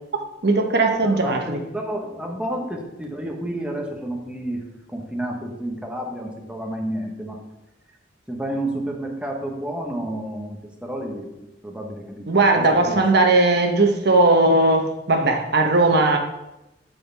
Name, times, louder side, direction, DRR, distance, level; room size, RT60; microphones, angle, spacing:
voice 1, 0.4-1.6 12.3-16.2, right 2 dB, 65° right, 3 dB, 1.0 m, -18 dB
voice 2, 1.0-4.6 4.9-7.4 8.3-11.3 11.6-13.0, right 1 dB, 5° right, 0 dB, 1.0 m, -30 dB
13.0 x 4.7 x 3.4 m, 0.93 s
head